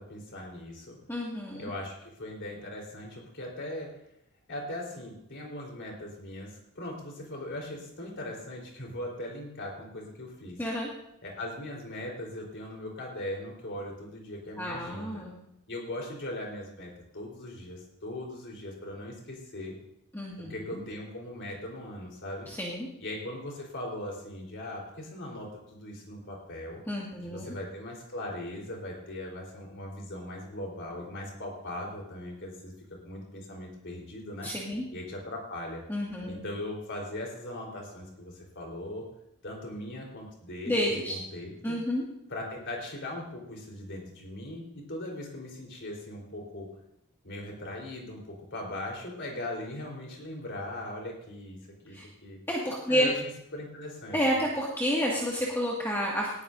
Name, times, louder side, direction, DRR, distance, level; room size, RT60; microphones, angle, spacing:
voice 1, 0.0-1.0 1.6-3.9 4.5-10.6 11.2-15.2 15.7-19.7 20.4-22.5 23.0-26.8 27.2-32.7 33.0-34.5 34.9-35.8 36.3-39.1 39.4-41.8 42.3-46.7 47.2-52.4 52.9-53.2 53.5-54.2, left 1 dB, 55° left, 0 dB, 4.0 m, -39 dB
voice 2, 1.1-1.6 10.6-10.9 14.6-15.4 20.1-20.8 22.5-22.9 26.9-27.4 34.4-34.8 35.9-36.4 40.7-41.1 41.6-42.0 51.9-52.1 52.5-53.1 54.1-56.3, equal, 10° left, -4 dB, 2.0 m, -30 dB
19.5 x 13.5 x 2.7 m, 0.78 s
head